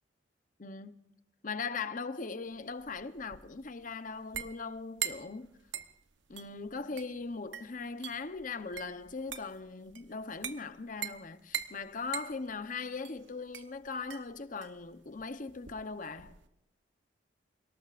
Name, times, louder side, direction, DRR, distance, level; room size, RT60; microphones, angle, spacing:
voice 1, 0.6-1.0 1.4-5.5 6.3-16.4, left 4 dB, 40° left, 0.9 m, -39 dB
sound 1, 2.5-16.5, right 10 dB, 65° right, 1.0 m, -43 dB
28.5 x 18.5 x 2.5 m
head